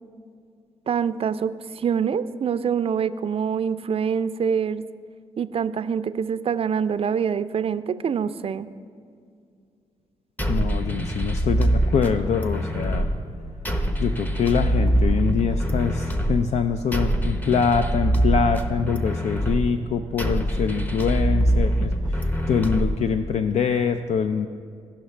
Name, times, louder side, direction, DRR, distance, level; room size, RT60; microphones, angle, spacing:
voice 1, 0.9-4.8 5.4-8.7, right 7 dB, 50° right, 13 dB, 0.4 m, -25 dB
sound 1, 10.4-23.4, right 1 dB, 15° left, 0.9 m, -24 dB
voice 2, 10.5-13.1 14.0-24.5, left 6 dB, 65° left, 8 dB, 0.4 m, -24 dB
17.0 x 5.8 x 3.3 m, 2.3 s
cardioid pair, 60°, 12 cm